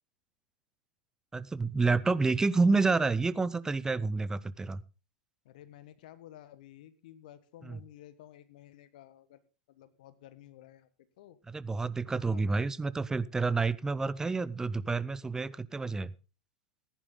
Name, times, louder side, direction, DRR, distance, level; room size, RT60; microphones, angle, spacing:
voice 1, 1.3-4.8 7.6-7.8 11.5-16.1, right 3 dB, 10° right, 18 dB, 0.6 m, -29 dB
voice 2, 5.4-9.4 9.7-10.9 11.2-11.4 12.0-12.7, left 12 dB, 60° left, 14 dB, 1.3 m, -53 dB
15.0 x 10.5 x 3.8 m, 0.33 s
hypercardioid pair, 95°, 5 cm